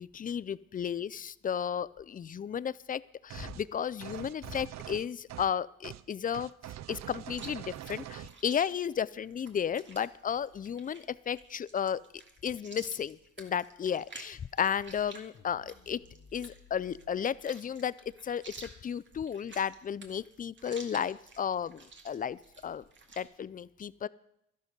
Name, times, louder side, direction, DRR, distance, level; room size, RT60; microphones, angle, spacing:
voice 1, 0.0-6.5 6.9-12.0 12.4-16.0 16.3-22.8 23.2-24.1, left 8 dB, 30° left, 19 dB, 0.4 m, -34 dB
sound 1, 3.3-3.7 4.0-5.6 5.8-6.0 6.3-8.4, right 13 dB, 65° right, 0.5 m, -44 dB
Chewing mastication, 7.4-23.3, right 3 dB, 40° right, 2.1 m, -52 dB
sound 2, 15.3-17.2, left 6 dB, 50° left, 1.6 m, -57 dB
12.5 x 11.5 x 5.3 m, 0.81 s
cardioid pair, 90°, 30 cm